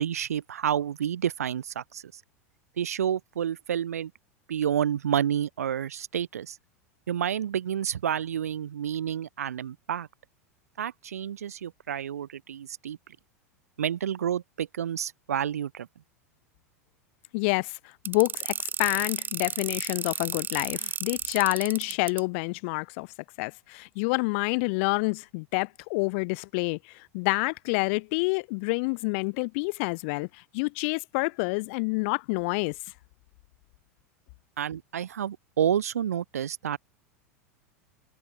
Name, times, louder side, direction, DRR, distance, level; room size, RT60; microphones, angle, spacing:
voice 1, 0.0-2.2 2.8-4.1 4.5-6.6 7.1-10.1 10.8-13.0 13.8-15.9 34.6-36.8, right 9 dB, 75° right, 5.5 m, -29 dB
voice 2, 17.3-17.8 18.0-23.1 23.4-32.8, left 31 dB, 55° left, 1.3 m, -28 dB
sound 1, 18.1-22.2, right 7 dB, 25° right, 1.7 m, -32 dB
figure-of-eight pair, 90°, 8 cm